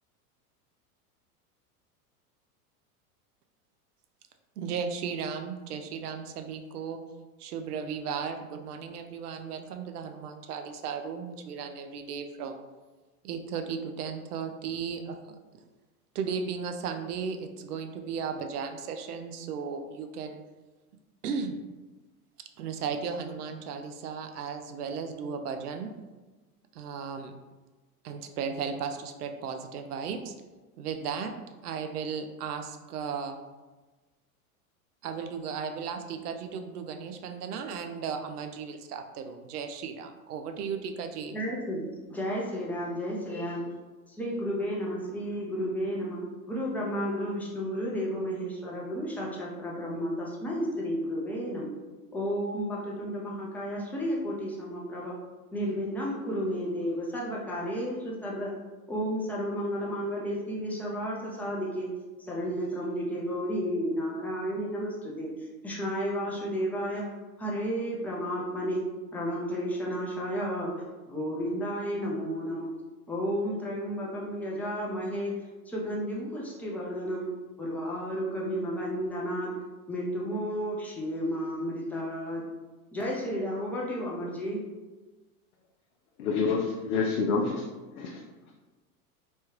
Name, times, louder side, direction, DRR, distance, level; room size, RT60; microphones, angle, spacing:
voice 1, 4.6-7.0 7.4-12.6 13.2-15.2 15.5-15.6 16.1-20.4 21.2-21.6 22.6-25.9 26.7-27.3 28.0-30.3 30.8-31.3 31.6-33.4 35.0-41.4, right 6 dB, 80° right, 6 dB, 0.6 m, -35 dB
voice 2, 41.3-43.6 44.1-51.7 52.1-55.1 55.5-58.5 58.9-61.9 62.2-65.3 65.6-67.0 67.4-68.8 69.1-70.7 71.1-72.7 73.1-75.3 75.7-77.3 77.6-79.5 79.9-82.4 82.9-84.6, equal, 5° left, -4 dB, 0.5 m, -32 dB
voice 3, 86.2-87.6 88.0-88.2, left 4 dB, 70° left, 0 dB, 0.6 m, -27 dB
3.1 x 2.3 x 3.0 m, 1.2 s
hypercardioid pair, 100°, 45 cm